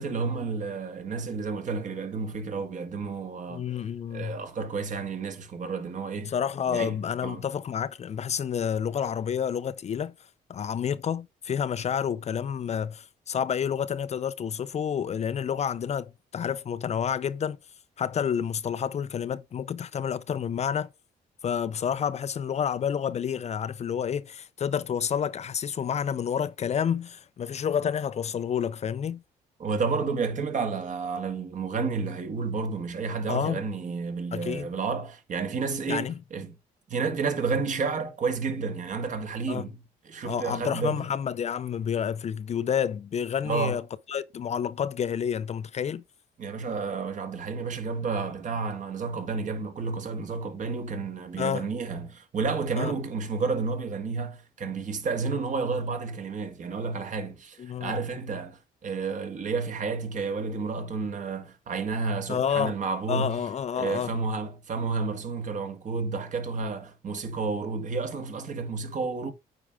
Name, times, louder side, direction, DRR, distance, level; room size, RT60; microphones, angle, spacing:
voice 1, 0.0-3.8 4.1-6.3 6.7-7.0 7.2-7.5 29.6-36.5 36.9-39.8 40.1-41.0 43.4-43.8 46.4-63.4 63.7-69.3, right 4 dB, 50° right, 1.8 m, -31 dB
voice 2, 3.5-4.4 6.2-10.1 10.5-17.6 18.0-20.9 21.4-29.2 33.3-33.6 34.3-34.7 35.9-36.1 39.5-39.6 40.2-43.8 44.1-46.0 51.4-51.7 52.8-52.9 57.6-58.0 62.3-62.7 63.1-64.1, left 8 dB, 45° left, 0.5 m, -29 dB
8.8 x 4.6 x 3.6 m
cardioid pair, 85°, 16 cm